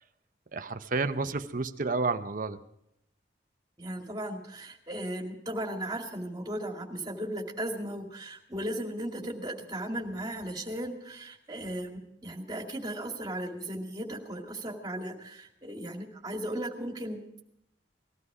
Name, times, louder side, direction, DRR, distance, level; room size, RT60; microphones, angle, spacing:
voice 1, 0.5-2.6, right 3 dB, 50° right, 9 dB, 0.8 m, -30 dB
voice 2, 3.8-17.4, right 1 dB, 25° right, 1 dB, 2.3 m, -36 dB
19.5 x 13.5 x 4.9 m, 0.81 s
head